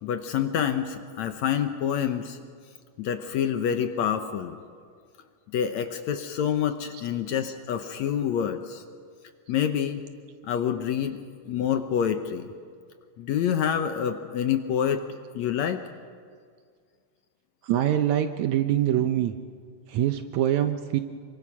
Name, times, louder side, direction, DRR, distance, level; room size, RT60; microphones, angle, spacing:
voice 1, 0.0-2.4 3.0-4.6 5.5-8.8 9.5-10.0 10.4-11.2 11.5-12.5 13.2-15.0 15.3-15.8, left 8 dB, 70° left, 8 dB, 1.9 m, -27 dB
voice 2, 17.6-19.3 19.9-21.0, right 11 dB, 70° right, 8 dB, 1.9 m, -24 dB
26.5 x 23.5 x 6.1 m, 2.1 s
omnidirectional pair, 3.9 m